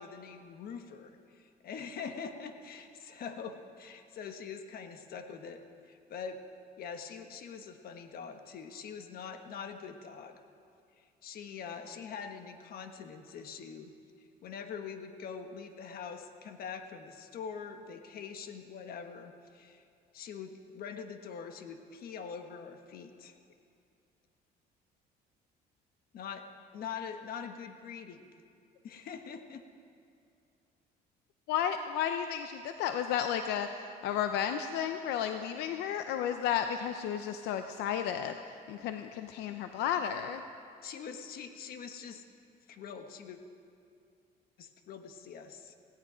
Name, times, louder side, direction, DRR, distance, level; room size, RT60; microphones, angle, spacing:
voice 1, 0.0-6.4 6.8-10.4 11.0-13.9 14.4-19.8 20.1-23.3 26.1-26.5 26.7-28.3 28.8-29.6 40.8-42.2 42.7-43.4 44.6-45.7, left 6 dB, 60° left, 6 dB, 1.4 m, -44 dB
voice 2, 31.5-38.4 38.7-40.4, left 9 dB, 90° left, 8 dB, 0.6 m, -33 dB
17.0 x 17.0 x 5.0 m, 2.4 s
cardioid pair, 110°, 17 cm